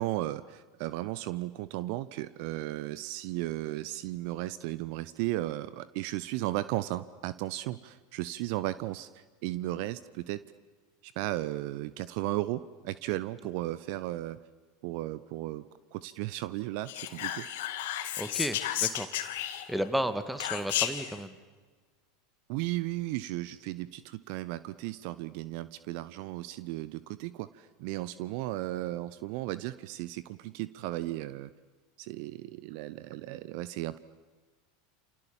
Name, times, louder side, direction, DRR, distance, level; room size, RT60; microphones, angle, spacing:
voice 1, 0.0-10.4 11.0-14.4 14.8-15.7 15.9-17.5 22.5-31.5 32.0-34.0, right 16 dB, 55° right, 16 dB, 0.9 m, -35 dB
Whispering, 16.9-19.9 20.4-21.1, left 12 dB, 65° left, 2.6 m, -33 dB
voice 2, 18.2-19.1 19.7-21.4, equal, 5° right, 12 dB, 2.3 m, -33 dB
29.0 x 28.0 x 7.3 m, 1.4 s
figure-of-eight pair, 80°, 0 cm